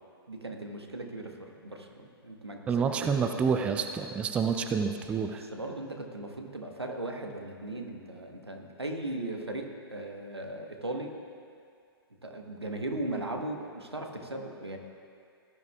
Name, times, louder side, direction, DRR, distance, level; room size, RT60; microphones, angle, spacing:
voice 1, 0.3-3.1 5.3-11.1 12.2-14.8, right 1 dB, 85° right, 2 dB, 1.3 m, -38 dB
voice 2, 2.7-5.4, right 6 dB, 10° right, 6 dB, 0.3 m, -28 dB
17.5 x 11.5 x 2.4 m, 2.3 s
figure-of-eight pair, 115°, 13 cm